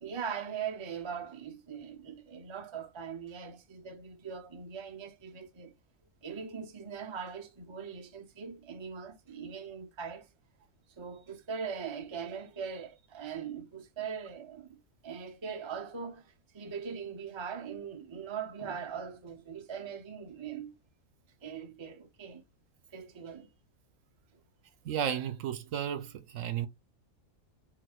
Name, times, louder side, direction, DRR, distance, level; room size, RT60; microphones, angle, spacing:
voice 1, 0.0-5.7 6.2-10.2 11.0-14.8 15.0-16.2 16.5-20.7 21.4-22.4 22.9-23.5, right 6 dB, 40° right, 0.4 m, -41 dB
voice 2, 24.8-26.7, right 9 dB, 70° right, 1.0 m, -33 dB
4.7 x 3.7 x 2.3 m
omnidirectional pair, 1.5 m